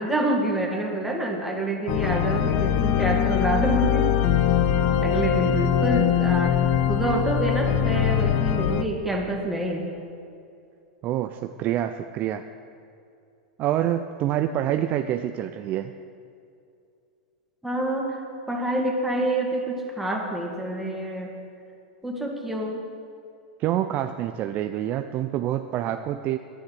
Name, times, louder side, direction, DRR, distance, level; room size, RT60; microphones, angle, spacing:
voice 1, 0.0-4.2 5.0-6.6 6.9-9.9 17.6-18.2 18.5-21.3 22.0-22.8, right 1 dB, 5° right, 0 dB, 2.2 m, -27 dB
sound 1, 1.9-8.8, left 9 dB, 50° left, 0.7 m, -22 dB
voice 2, 11.0-12.5 13.6-15.9 23.6-26.4, right 12 dB, 40° right, 8 dB, 0.5 m, -26 dB
10.5 x 10.0 x 8.0 m, 2.5 s
hypercardioid pair, 105°, 4 cm